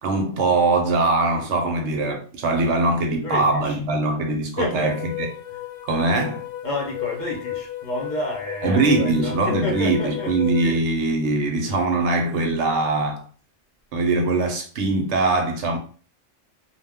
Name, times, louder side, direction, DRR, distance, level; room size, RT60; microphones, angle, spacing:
voice 1, 0.0-5.3 5.8-6.4 8.6-13.2 13.9-15.8, right 2 dB, 70° right, 0.9 m, -22 dB
voice 2, 3.1-3.8 4.6-4.9 6.6-10.3 10.6-10.8, left 1 dB, 45° left, 0.7 m, -30 dB
sound 1, 4.8-10.8, left 12 dB, 90° left, 0.9 m, -34 dB
2.3 x 2.1 x 3.4 m
omnidirectional pair, 1.3 m